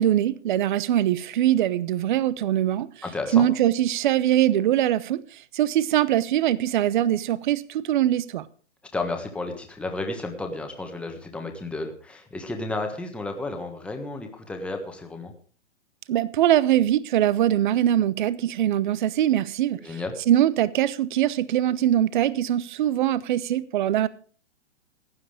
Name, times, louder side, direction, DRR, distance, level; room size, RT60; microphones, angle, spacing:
voice 1, 0.0-2.9 3.3-5.2 5.5-8.5 16.1-19.8 20.3-24.1, right 12 dB, 45° right, 0.8 m, -22 dB
voice 2, 3.0-3.5 8.9-15.3 19.8-20.2, left 2 dB, 5° left, 1.4 m, -32 dB
15.5 x 10.0 x 5.0 m
hypercardioid pair, 160°, 36 cm